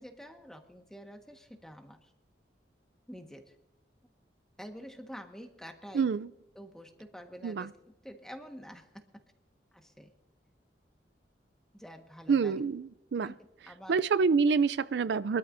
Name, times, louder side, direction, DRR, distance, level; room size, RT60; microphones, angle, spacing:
voice 1, 0.0-2.1 3.1-3.5 4.6-6.1 6.5-7.7 8.0-9.2 9.7-10.1 11.7-12.6 13.1-13.3 13.7-14.0, equal, 5° left, 4 dB, 1.4 m, -48 dB
voice 2, 5.9-6.3 7.4-7.7 12.3-13.3 13.9-15.4, right 5 dB, 70° right, 16 dB, 0.4 m, -27 dB
23.5 x 13.0 x 2.6 m, 0.94 s
head